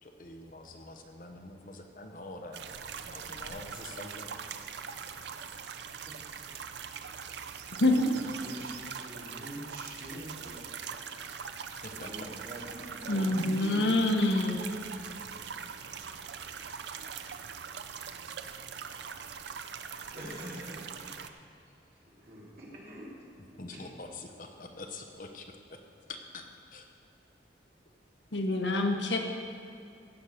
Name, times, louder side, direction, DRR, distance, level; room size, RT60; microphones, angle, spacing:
voice 1, 0.0-2.7 3.0-4.4 11.8-12.3 23.5-25.8 26.1-26.4 26.7-26.8, left 2 dB, 45° left, 4 dB, 0.9 m, -45 dB
sound 1, 2.5-21.3, right 7 dB, 75° right, 0.6 m, -42 dB
voice 2, 8.1-10.9 11.9-14.8 20.1-21.1 22.2-23.1 23.7-23.8, equal, 50° right, -5 dB, 2.9 m, -44 dB
voice 3, 13.1-14.6 28.3-29.2, left 2 dB, 85° left, 3 dB, 1.2 m, -26 dB
16.0 x 5.8 x 6.5 m, 2.4 s
head